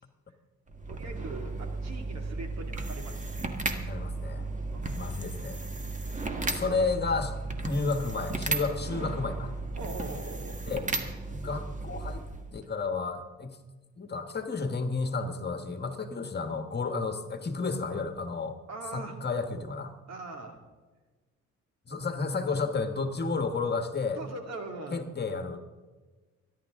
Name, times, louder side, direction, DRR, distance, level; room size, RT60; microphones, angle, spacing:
sound 1, 0.7-12.6, right 3 dB, 25° right, 1.6 m, -35 dB
voice 1, 0.9-3.6 3.9-4.0 4.7-5.2 5.5-5.9 9.7-10.6 16.8-17.0 18.7-19.2 20.1-20.6 24.2-25.1, right 3 dB, 60° right, 3 dB, 2.5 m, -42 dB
voice 2, 3.9-4.5 4.9-5.6 6.5-9.5 10.7-10.9 11.3-12.2 12.5-13.6 14.0-18.6 18.9-19.9 21.9-24.2 24.9-25.6, left 4 dB, 35° left, 7 dB, 1.5 m, -32 dB
24.5 x 11.0 x 3.7 m, 1.3 s
cardioid pair, 90°, 30 cm